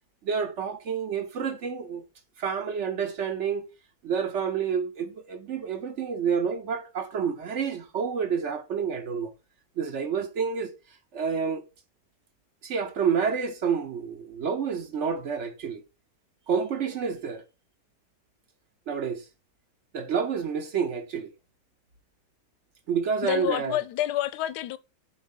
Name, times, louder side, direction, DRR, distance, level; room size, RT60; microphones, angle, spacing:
voice 1, 0.2-2.0 2.4-3.6 4.0-9.3 9.8-10.7 11.1-11.6 12.6-15.8 16.5-17.4 18.9-19.2 19.9-21.3 22.9-23.8, right 6 dB, 55° right, 0.9 m, -29 dB
voice 2, 23.2-24.8, left 13 dB, 90° left, 1.2 m, -28 dB
5.0 x 4.0 x 5.3 m
omnidirectional pair, 1.7 m